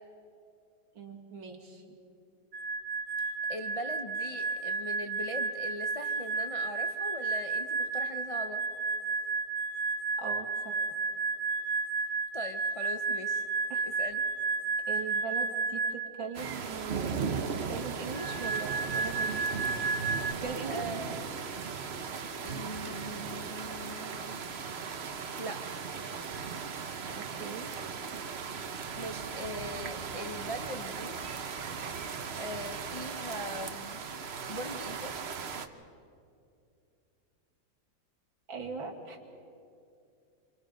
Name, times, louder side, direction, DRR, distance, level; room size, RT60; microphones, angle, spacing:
voice 1, 0.9-2.0 10.2-10.8 13.7-13.9 14.9-19.4 20.4-20.8 27.1-27.7 38.5-39.3, right 5 dB, 90° right, 0 dB, 2.9 m, -40 dB
sound 1, 2.5-16.2 18.1-20.3, right 4 dB, 75° right, 0.4 m, -32 dB
voice 2, 3.2-8.6 12.3-13.5 14.0-14.2 20.7-21.3 22.4-24.4 25.1-25.6 29.0-31.2 32.4-35.1, equal, 60° left, 4 dB, 0.3 m, -41 dB
sound 2, 16.3-35.7, right 5 dB, 45° right, 0.8 m, -37 dB
28.0 x 25.0 x 5.2 m, 2.5 s
omnidirectional pair, 2.1 m